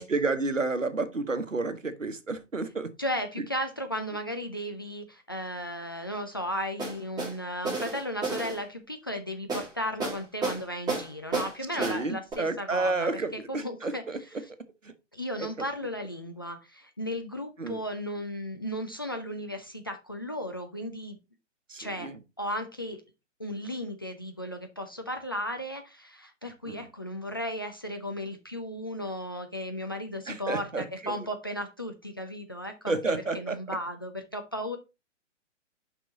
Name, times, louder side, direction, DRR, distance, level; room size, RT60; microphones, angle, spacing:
voice 1, 0.0-2.9 11.7-14.2 14.8-14.9 15.4-15.5 17.6-17.8 21.7-22.2 26.6-26.9 30.3-31.1 32.9-33.6, right 3 dB, 85° right, 1.1 m, -30 dB
voice 2, 3.0-14.0 15.1-21.2 21.8-22.1 22.4-23.0 23.4-34.8, equal, 20° left, 0.3 m, -35 dB
sound 1, 6.8-7.3 7.7-8.6 9.5-9.7 10.0-10.6 10.9-11.5 11.8-12.0 12.3-12.4, right 3 dB, 10° right, 2.8 m, -31 dB
6.1 x 5.4 x 3.9 m
figure-of-eight pair, 130°, 37 cm